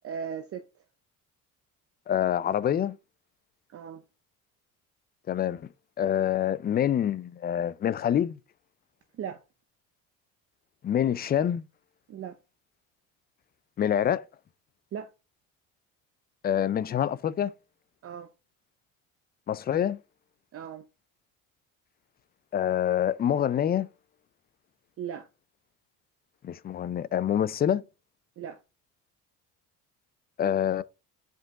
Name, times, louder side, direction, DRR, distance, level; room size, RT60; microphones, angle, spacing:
voice 1, 0.0-0.6 3.7-4.0 9.2-9.4 12.1-12.4 14.9-15.1 18.0-18.3 20.5-20.9 25.0-25.3 28.4-28.6, right 8 dB, 40° right, 0.7 m, -37 dB
voice 2, 2.1-3.0 5.3-5.7 6.0-8.4 10.8-11.7 13.8-14.2 16.4-17.5 19.5-20.0 22.5-23.9 26.4-27.8 30.4-30.8, left 10 dB, 25° left, 0.4 m, -26 dB
5.2 x 5.1 x 3.6 m
supercardioid pair, 85°, 38 cm